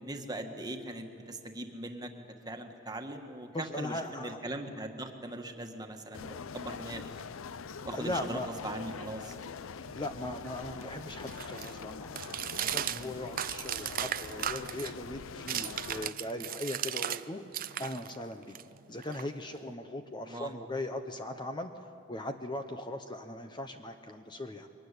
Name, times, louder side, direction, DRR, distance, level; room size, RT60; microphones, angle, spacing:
voice 1, 0.0-2.1 2.4-7.1 7.8-9.3 12.8-13.1 20.2-20.5, right 1 dB, 20° right, 4 dB, 1.6 m, -40 dB
voice 2, 3.5-4.4 7.9-8.5 9.9-18.6 18.9-21.7 22.1-24.7, left 1 dB, 20° left, 6 dB, 0.9 m, -39 dB
sound 1, 6.1-16.1, left 6 dB, 75° left, 0.5 m, -44 dB
sound 2, 9.9-17.2 17.5-19.7, right 10 dB, 45° right, 0.5 m, -37 dB
23.0 x 19.5 x 10.0 m, 2.7 s
head